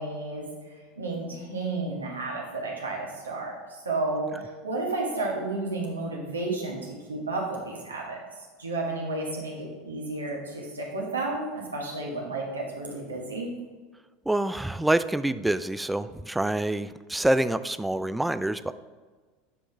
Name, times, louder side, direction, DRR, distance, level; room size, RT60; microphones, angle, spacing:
voice 1, 0.0-13.5, right 2 dB, 80° right, -2 dB, 1.5 m, -32 dB
voice 2, 14.3-18.7, right 1 dB, 5° right, 13 dB, 0.3 m, -26 dB
8.9 x 5.4 x 3.4 m, 1.4 s
figure-of-eight pair, 75°, 0 cm